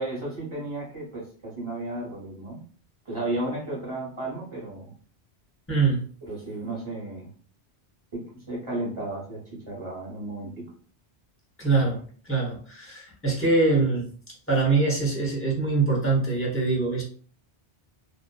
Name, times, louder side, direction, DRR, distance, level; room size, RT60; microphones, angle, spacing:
voice 1, 0.0-2.6 3.0-4.9 6.2-7.3 8.1-10.7, right 2 dB, 30° right, -4 dB, 1.1 m, -33 dB
voice 2, 5.7-6.1 11.6-14.1 14.5-17.0, right 3 dB, 15° left, -4 dB, 0.8 m, -24 dB
2.6 x 2.2 x 2.2 m, 0.44 s
omnidirectional pair, 1.2 m